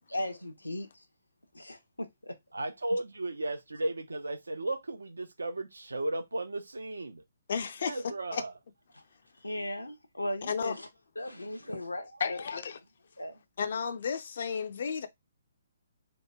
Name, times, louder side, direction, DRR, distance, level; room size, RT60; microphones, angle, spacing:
voice 1, 0.1-0.9 1.5-2.4 9.4-10.9 11.2-12.4 13.2-13.4, left 1 dB, 80° left, 0.8 m, -37 dB
voice 2, 2.5-7.2 7.8-8.5 11.7-11.8, right 2 dB, 70° right, 0.6 m, -35 dB
voice 3, 7.5-8.4 10.5-10.8 12.2-12.8 13.6-15.1, left 6 dB, 50° left, 0.5 m, -33 dB
3.0 x 2.2 x 3.5 m
figure-of-eight pair, 130°, 0 cm